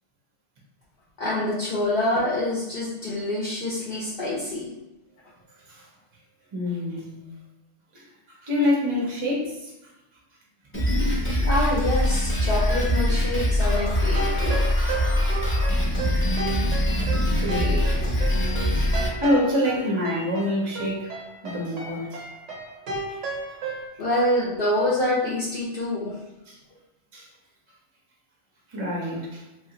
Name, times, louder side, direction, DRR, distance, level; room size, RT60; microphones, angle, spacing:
voice 1, 1.2-4.7 11.4-14.6 24.0-26.1, left 1 dB, 60° left, -7 dB, 0.8 m, -26 dB
voice 2, 6.5-7.3 8.4-9.7 16.2-16.3 16.7-16.8 17.1-18.0 18.7-18.8 19.2-21.1 21.4-22.2 26.5-26.6 27.1-27.2 28.7-29.4, left 1 dB, 35° right, -3 dB, 0.5 m, -26 dB
Drum kit, 10.7-19.1, left 1 dB, 15° left, 0.5 m, -23 dB
sound 1, 13.7-23.9, right 2 dB, 85° right, 1.0 m, -34 dB
2.9 x 2.4 x 2.8 m, 0.95 s
omnidirectional pair, 1.2 m